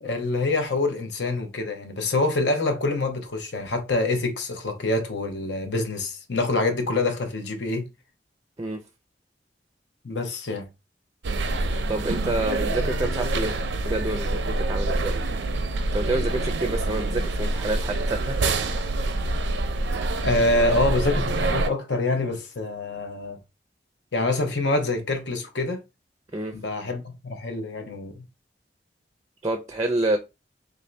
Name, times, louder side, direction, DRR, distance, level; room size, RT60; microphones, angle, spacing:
voice 1, 0.0-7.9 10.0-10.7 20.2-23.4 24.1-25.8 26.5-28.2, left 2 dB, 80° left, 0.8 m, -26 dB
sound 1, 11.2-21.7, right 2 dB, 90° right, 0.5 m, -26 dB
voice 2, 11.9-13.6 13.8-15.2 15.9-18.4 26.3-26.5 29.4-30.2, right 2 dB, 20° right, 0.4 m, -28 dB
3.4 x 2.6 x 3.2 m
head